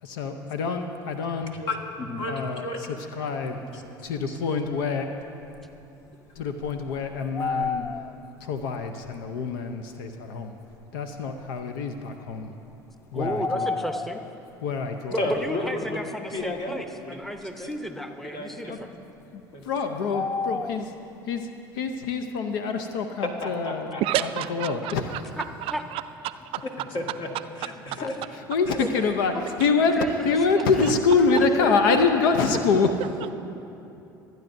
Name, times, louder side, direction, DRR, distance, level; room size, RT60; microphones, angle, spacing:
voice 1, 0.0-1.6 2.3-2.7 3.1-3.6 4.0-5.1 6.4-7.9 8.4-10.6 10.9-12.5 13.1-13.7 14.6-15.3 18.7-18.8 19.3-20.9 21.2-21.5 21.7-25.0 28.0-28.1 28.5-32.9, left 4 dB, 75° left, 7 dB, 0.6 m, -26 dB
voice 2, 1.6-2.8 3.7-3.8 4.3-4.4 15.1-16.0 16.3-17.2 17.6-17.9 18.2-18.8 19.5-19.6 23.4-24.0 26.9-27.3 27.6-28.1 28.7-29.1 31.5-32.3 32.8-32.9, left 2 dB, 50° left, 1 dB, 1.7 m, -32 dB
sound 1, 5.5-5.6 6.4-8.3 9.1-9.2 10.7-10.8 13.2-14.4 20.1-20.9, left 4 dB, 25° left, 0.3 m, -30 dB
voice 3, 13.1-14.2 15.1-18.9 25.4-25.8 28.8-28.9 29.3-29.6 30.0-30.1 30.7-31.4, equal, ahead, 6 dB, 0.8 m, -34 dB
voice 4, 24.0-25.2 25.6-26.6 27.9-28.0 29.6-29.7 30.0-30.1 30.8-30.9 33.0-33.1, right 13 dB, 55° right, 12 dB, 0.4 m, -30 dB
24.5 x 9.2 x 2.6 m, 2.9 s
hypercardioid pair, 70°, 11 cm